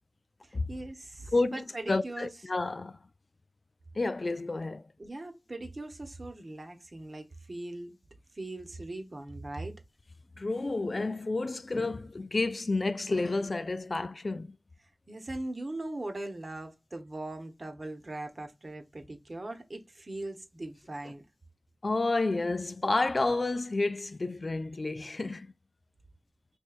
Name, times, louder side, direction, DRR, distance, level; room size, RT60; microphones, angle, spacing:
voice 1, 0.4-2.3 5.0-8.0 8.3-9.8 15.1-21.3, right 2 dB, 55° right, 1.0 m, -40 dB
voice 2, 1.9-3.0 4.0-4.8 10.4-14.5 21.8-25.5, left 3 dB, 55° left, 0.3 m, -30 dB
4.4 x 3.1 x 2.4 m
wide cardioid pair, 50°, 0 cm